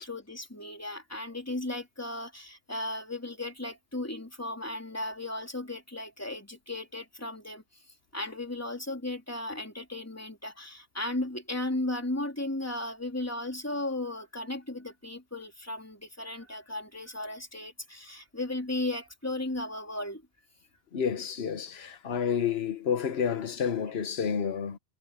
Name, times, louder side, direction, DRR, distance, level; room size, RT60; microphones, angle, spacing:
voice 1, 0.0-7.6 8.1-20.2, left 2 dB, 15° left, 3.3 m, -35 dB
voice 2, 20.9-24.8, left 7 dB, 70° left, 1.3 m, -30 dB
omnidirectional pair, 1.1 m